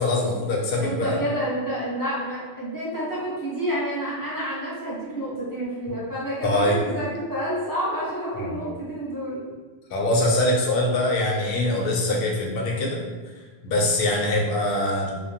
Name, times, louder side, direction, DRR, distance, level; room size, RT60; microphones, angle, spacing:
voice 1, 0.0-1.2 6.4-6.8 8.3-8.5 9.9-13.0 13.6-15.1, left 1 dB, 65° left, -1 dB, 0.7 m, -23 dB
voice 2, 0.8-9.4, equal, 20° right, -9 dB, 0.7 m, -29 dB
2.2 x 2.1 x 2.6 m, 1.3 s
omnidirectional pair, 1.1 m